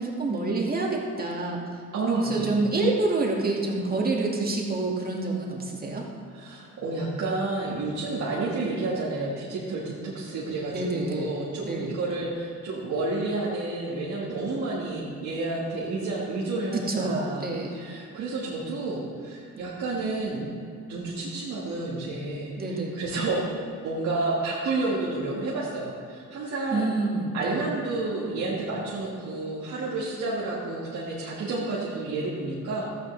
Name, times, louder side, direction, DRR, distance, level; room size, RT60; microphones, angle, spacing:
voice 1, 0.0-6.1 10.7-11.3 11.7-11.9 16.7-17.9 22.6-23.0 26.7-27.6, right 2 dB, 30° right, -2 dB, 2.0 m, -27 dB
voice 2, 1.9-2.5 6.3-17.5 17.7-20.5 20.9-23.4 23.8-26.9 27.3-33.0, right 2 dB, 70° right, -6 dB, 1.8 m, -30 dB
13.0 x 9.6 x 3.3 m, 2.3 s
cardioid pair, 90°, 30 cm